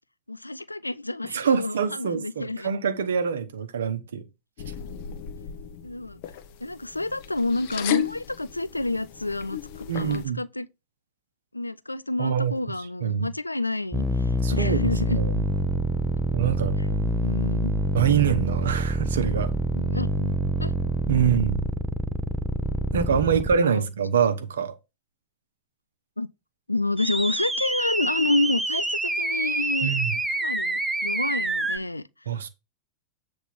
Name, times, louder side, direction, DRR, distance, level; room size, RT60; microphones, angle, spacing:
voice 1, 0.3-2.7 5.8-6.2 6.6-9.6 9.9-10.7 11.5-15.2 16.8-17.0 17.2-17.7 19.7-20.3 20.6-20.7 23.2-23.8 26.2-26.3 26.7-29.9 30.4-32.1, left 2 dB, 85° left, 0.4 m, -29 dB
voice 2, 1.3-4.2 9.9-10.4 12.2-12.5 13.0-13.3 14.4-15.3 16.3-16.8 17.9-19.5 21.1-21.7 22.9-24.8 29.8-30.2 32.3-32.5, right 7 dB, 65° right, 0.8 m, -25 dB
sound 1, 4.6-10.3, left 11 dB, 50° left, 1.0 m, -35 dB
sound 2, 13.9-23.5 27.0-31.8, right 1 dB, 10° right, 0.7 m, -26 dB
8.2 x 3.5 x 5.8 m
figure-of-eight pair, 90°, 0 cm